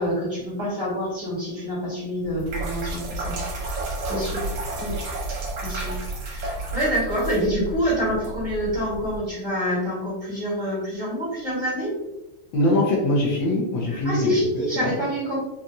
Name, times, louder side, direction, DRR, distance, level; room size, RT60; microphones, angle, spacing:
voice 1, 0.0-3.3 4.1-4.5 4.8-4.9 5.6-6.0 6.3-11.9 14.0-15.4, equal, 25° right, -9 dB, 1.4 m, -26 dB
sound 1, 2.2-9.2, right 2 dB, 65° right, 1.4 m, -31 dB
voice 2, 12.5-14.9, left 1 dB, 75° left, -2 dB, 1.5 m, -23 dB
4.0 x 2.4 x 2.5 m, 0.96 s
omnidirectional pair, 2.2 m